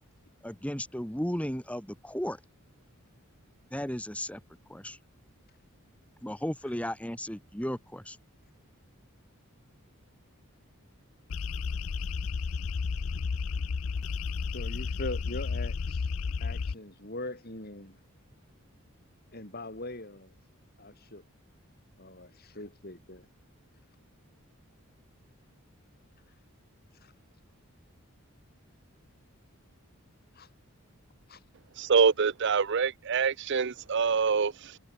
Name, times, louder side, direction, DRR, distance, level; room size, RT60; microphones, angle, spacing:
voice 1, 0.4-2.4 3.7-4.4 4.7-5.0 6.2-8.2, equal, 5° left, 2.2 m, -35 dB
sound 1, 11.3-16.7, left 5 dB, 70° left, 0.5 m, -32 dB
voice 2, 14.5-16.1 16.4-18.0 19.3-20.4 20.8-21.2 22.0-23.3 27.0-27.1 30.3-30.5 31.3-31.4, left 2 dB, 45° left, 6.2 m, -41 dB
voice 3, 31.8-34.8, right 5 dB, 55° right, 0.6 m, -25 dB
head